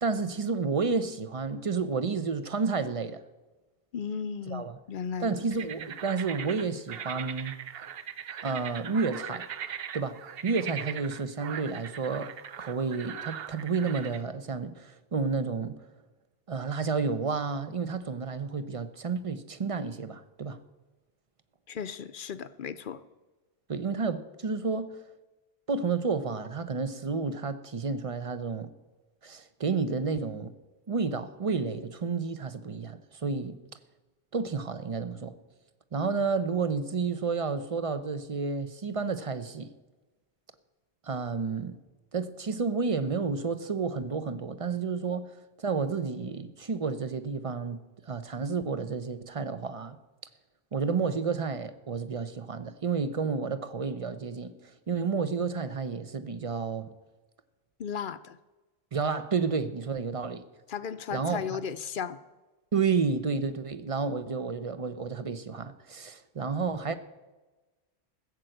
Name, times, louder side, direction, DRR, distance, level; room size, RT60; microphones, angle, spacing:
voice 1, 0.0-3.2 4.5-4.8 5.2-7.6 8.4-9.5 9.9-15.9 16.5-20.6 23.7-25.0 25.7-28.7 29.2-30.5 30.9-33.6 34.3-35.3 35.9-39.7 41.0-41.8 42.1-50.0 50.7-56.9 58.9-60.4 61.1-61.6 62.7-66.9, right 5 dB, 35° right, 0.7 m, -31 dB
voice 2, 3.9-5.4 21.7-23.0 57.8-58.4 60.7-62.2, left 7 dB, 60° left, 0.7 m, -35 dB
sound 1, 5.5-14.2, right 8 dB, 65° right, 0.9 m, -40 dB
15.0 x 7.5 x 7.9 m
omnidirectional pair, 1.1 m